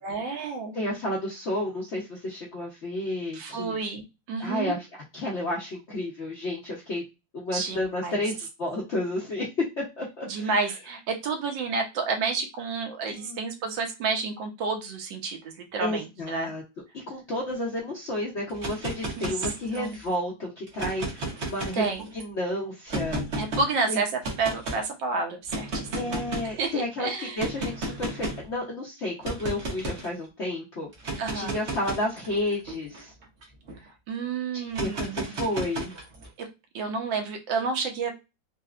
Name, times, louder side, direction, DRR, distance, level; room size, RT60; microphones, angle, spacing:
voice 1, 0.0-0.8 3.3-4.8 7.5-8.2 10.3-16.5 19.2-19.3 19.7-20.0 21.8-22.1 23.4-24.1 24.4-26.2 26.6-27.5 31.2-31.6 34.1-35.3 36.4-36.5 36.7-38.1, right 4 dB, 75° right, 4 dB, 1.4 m, -30 dB
voice 2, 0.7-3.8 4.4-4.9 5.1-7.0 7.3-10.5 13.1-13.4 15.8-16.6 16.9-21.8 22.1-23.2 23.9-24.0 25.9-33.1 34.5-35.9, left 1 dB, 60° left, -4 dB, 0.7 m, -31 dB
sound 1, 18.5-20.1 20.7-22.2 22.9-23.7 24.2-24.8 25.5-26.6 27.4-28.5 29.2-30.1 30.9-33.8 34.7-36.3, right 2 dB, 50° right, 0.9 m, -33 dB
4.0 x 2.1 x 2.3 m, 0.25 s
omnidirectional pair, 2.1 m